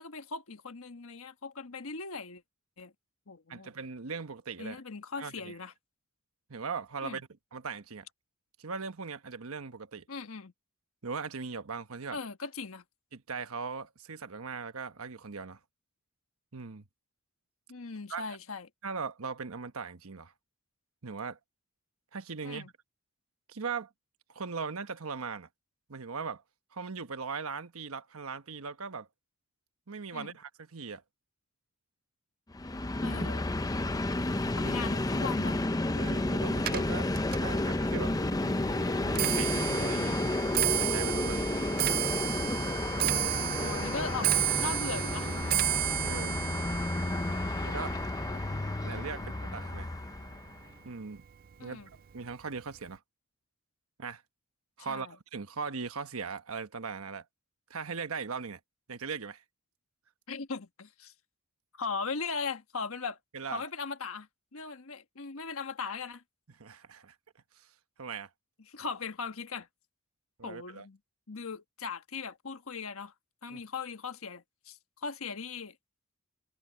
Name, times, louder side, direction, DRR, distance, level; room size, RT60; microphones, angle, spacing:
voice 1, 0.0-2.4 2.8-2.9 3.3-3.7 4.6-5.7 7.0-7.2 10.1-10.5 12.1-12.8 17.7-18.7 22.4-22.7 30.1-30.3 33.0-33.5 34.5-35.6 43.0-45.3 48.3-48.6 49.1-49.2 51.6-51.9 54.9-55.1 60.3-61.1 61.7-63.2 63.5-66.2 68.7-69.7 70.4-71.0 71.3-73.1 73.4-75.7, left 4 dB, 70° left, 1.4 m, -39 dB
voice 2, 3.5-4.8 5.2-5.6 6.5-8.1 8.6-10.0 11.0-12.2 13.1-15.6 16.5-16.8 18.1-18.4 18.8-20.3 21.0-21.4 22.1-22.7 23.5-23.9 24.3-25.5 25.9-26.4 26.7-29.1 29.9-31.0 34.6-34.7 35.9-37.1 37.4-38.1 39.1-40.2 40.8-41.5 46.0-46.4 47.6-48.0 48.8-49.9 50.8-51.2 51.6-53.0 54.0-54.2 54.8-57.2 57.7-58.6 58.9-59.4 63.3-63.6 66.5-67.1 67.5-67.7 68.0-68.3 70.4-70.9 73.5-73.6, right 5 dB, 75° right, 1.1 m, -39 dB
Train, 32.5-50.6, left 2 dB, 15° left, 0.5 m, -31 dB
sound 1, 35.9-46.8, equal, 15° right, 3.9 m, -45 dB
Clock, 36.6-49.9 50.3-50.7 51.5-51.6 51.9-52.3 52.6-52.7, right 12 dB, 40° right, 0.4 m, -33 dB
open air
head